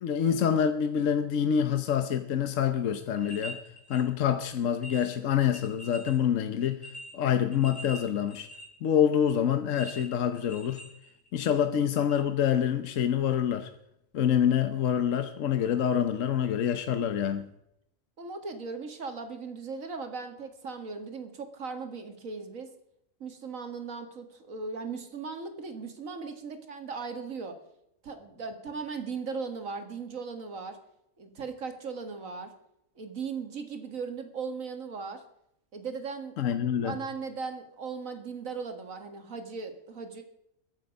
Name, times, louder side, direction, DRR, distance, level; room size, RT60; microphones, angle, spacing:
voice 1, 0.0-3.6 3.9-6.8 7.1-8.5 8.8-10.8 11.3-13.7 14.1-17.5 36.4-37.0, left 9 dB, 70° left, 1.2 m, -26 dB
sound 1, 3.0-4.0 4.5-4.6 4.8-6.2 6.6-8.8 9.7-11.5 12.1-12.2, right 1 dB, 25° left, 3.7 m, -44 dB
voice 2, 18.2-22.7 23.2-27.6 28.0-30.8 31.2-32.5 33.0-35.2 35.7-40.2, right 5 dB, 75° right, 2.2 m, -38 dB
22.5 x 8.0 x 5.2 m
omnidirectional pair, 1.4 m